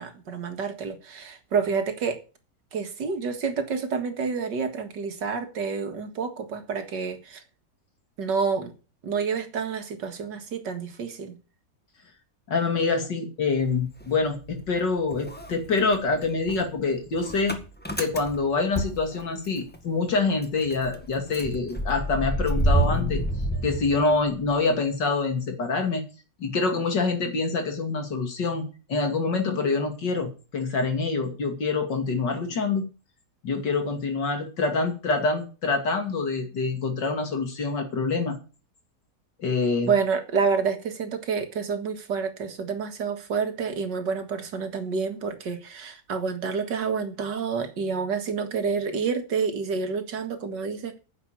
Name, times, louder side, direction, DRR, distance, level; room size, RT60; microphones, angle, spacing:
voice 1, 0.0-2.2 2.7-7.4 8.2-8.7 9.0-11.4 39.8-51.0, right 5 dB, 85° right, 2.4 m, -28 dB
voice 2, 12.5-17.6 18.0-23.2 23.6-26.0 26.4-28.6 28.9-32.8 33.4-38.4 39.4-39.9, left 4 dB, 85° left, 3.2 m, -26 dB
Motor vehicle (road) / Engine starting, 13.6-14.8 15.1-19.8 20.1-20.2 20.4-24.5, right 1 dB, 5° left, 1.6 m, -29 dB
9.8 x 7.1 x 8.8 m
omnidirectional pair, 1.9 m